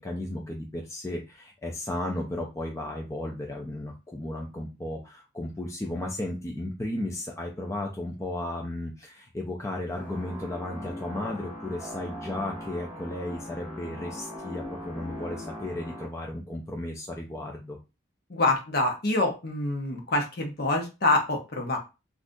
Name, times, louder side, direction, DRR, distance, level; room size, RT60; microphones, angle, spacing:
voice 1, 0.0-17.8, left 1 dB, 15° left, 0 dB, 0.4 m, -34 dB
sound 1, 9.9-16.1, left 1 dB, 10° right, 1.9 m, -40 dB
voice 2, 18.3-21.8, left 2 dB, 50° left, 2 dB, 0.8 m, -26 dB
3.6 x 2.4 x 2.6 m, 0.27 s
head